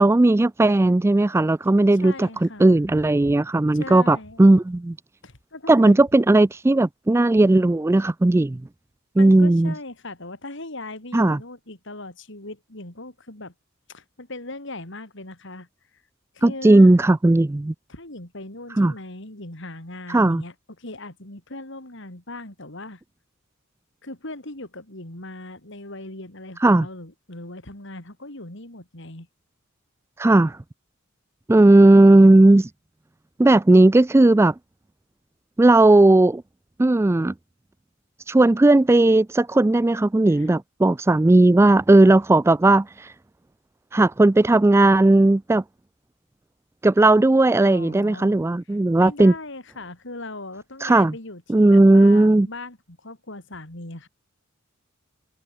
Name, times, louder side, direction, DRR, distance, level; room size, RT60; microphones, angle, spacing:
voice 1, 0.0-5.0 5.7-8.6 9.2-9.7 11.1-11.4 16.4-17.7 18.8-18.9 20.1-20.4 26.6-26.9 30.2-30.6 31.5-32.7 33.4-34.5 35.6-36.4 36.8-37.3 38.3-43.1 43.9-45.6 46.8-49.3 50.8-51.1 51.5-52.5, right 2 dB, 10° right, 0.3 m, -16 dB
voice 2, 2.0-3.3 3.7-4.4 5.2-6.0 9.2-13.5 13.9-15.7 16.3-16.9 17.9-23.0 24.0-29.3 40.3-40.5 47.6-48.5 49.0-54.1, left 2 dB, 60° left, 4.3 m, -39 dB
head